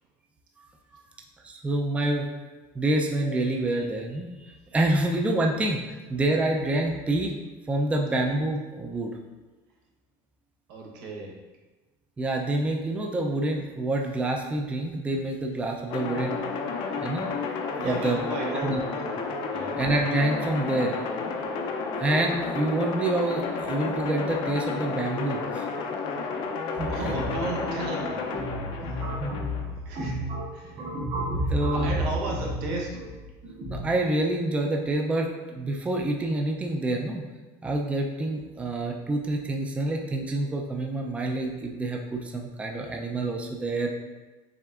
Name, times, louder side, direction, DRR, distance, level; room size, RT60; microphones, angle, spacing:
voice 1, 1.4-2.3 2.7-4.3 4.7-7.3 7.7-9.1 12.2-16.4 17.0-17.3 17.8-18.2 18.5-18.8 19.8-21.0 22.0-25.7 26.8-27.2 29.2-29.3 31.5-32.0 33.7-37.2 37.6-43.9, right 2 dB, 10° right, 1 dB, 0.4 m, -27 dB
voice 2, 10.7-11.4 17.8-19.2 19.5-19.8 26.1-26.2 26.9-28.2 28.8-29.0 29.8-30.2 30.5-30.8 31.4-33.1, right 2 dB, 85° right, -2 dB, 1.1 m, -34 dB
sound 1, 15.9-29.6, left 4 dB, 55° left, 0.5 m, -31 dB
sound 2, 26.8-33.8, right 1 dB, 55° right, 1.3 m, -32 dB
6.0 x 3.4 x 2.4 m, 1.2 s
cardioid pair, 140°, 10 cm